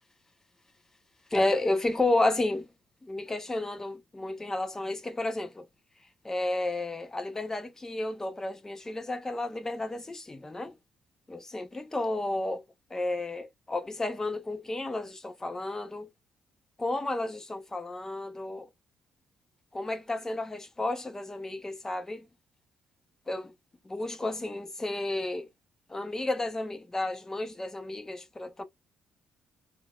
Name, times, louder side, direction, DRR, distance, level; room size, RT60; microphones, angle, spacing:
voice 1, 1.3-2.7 3.0-5.6 6.2-10.7 11.3-12.6 12.9-16.1 16.8-18.7 19.7-22.3 23.3-23.5 23.9-25.5 25.9-28.6, left 2 dB, 15° left, 0.6 m, -32 dB
3.7 x 2.4 x 2.2 m
cardioid pair, 100°, 3 cm